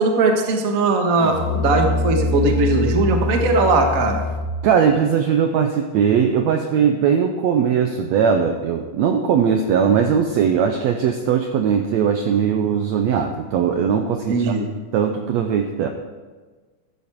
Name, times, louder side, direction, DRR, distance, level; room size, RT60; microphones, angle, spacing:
voice 1, 0.0-4.2 14.3-14.7, right 3 dB, 60° right, 4 dB, 0.8 m, -19 dB
Musical instrument, 1.2-4.7, left 2 dB, 70° left, 2.3 m, -24 dB
voice 2, 4.6-14.6 14.9-15.9, right 7 dB, 80° right, 5 dB, 1.6 m, -19 dB
14.0 x 12.5 x 4.6 m, 1.3 s
omnidirectional pair, 4.0 m